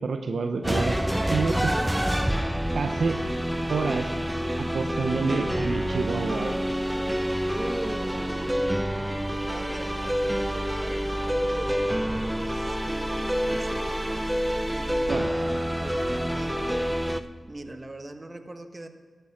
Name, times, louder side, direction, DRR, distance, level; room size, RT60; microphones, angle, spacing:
voice 1, 0.0-1.0 1.3-1.7 2.7-3.2 3.7-4.1 4.6-6.5 15.1-15.3, right 4 dB, 75° right, 7 dB, 0.7 m, -28 dB
sound 1, 0.5-15.6, left 1 dB, 50° left, 3.8 m, -49 dB
sound 2, 0.6-17.2, equal, 10° right, 0.7 m, -27 dB
voice 2, 5.1-5.5 7.4-8.8 9.3-13.9 14.7-18.9, right 2 dB, 35° right, 8 dB, 1.2 m, -41 dB
12.5 x 8.3 x 5.8 m, 1.5 s
cardioid pair, 40°, 0 cm